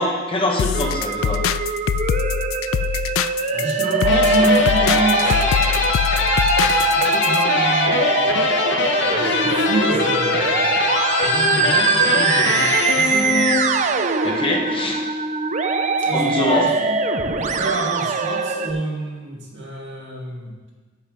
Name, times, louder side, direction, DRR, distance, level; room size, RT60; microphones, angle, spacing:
voice 1, 0.0-1.4 14.2-15.0 16.1-16.7, left 1 dB, 25° left, -1 dB, 1.3 m, -23 dB
sound 1, 0.6-7.4, left 8 dB, 90° left, 0.3 m, -24 dB
Musical instrument, 0.7-18.7, right 4 dB, 40° right, 0.5 m, -22 dB
voice 2, 3.5-5.5 6.6-8.5 9.0-10.7 11.2-13.6 16.0-17.0 17.4-20.5, right 2 dB, 60° right, -3 dB, 2.4 m, -28 dB
sound 2, 4.0-14.0, left 4 dB, 60° left, 1.0 m, -22 dB
8.3 x 8.1 x 5.0 m, 1.3 s
head